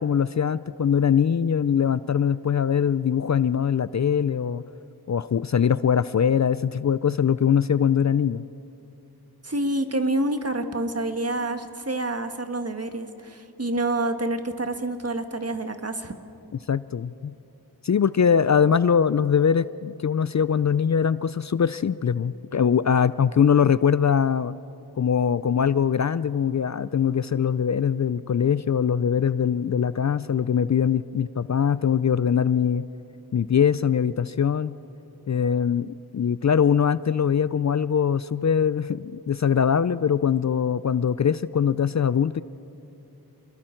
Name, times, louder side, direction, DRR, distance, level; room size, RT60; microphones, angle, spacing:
voice 1, 0.0-4.6 5.1-8.4 16.7-17.3 17.8-24.5 25.0-32.9 33.3-34.8 35.3-42.4, left 7 dB, 50° left, 17 dB, 0.4 m, -22 dB
voice 2, 9.4-16.2, right 2 dB, 40° right, 7 dB, 1.5 m, -28 dB
28.0 x 21.5 x 4.5 m, 2.8 s
wide cardioid pair, 40°, 39 cm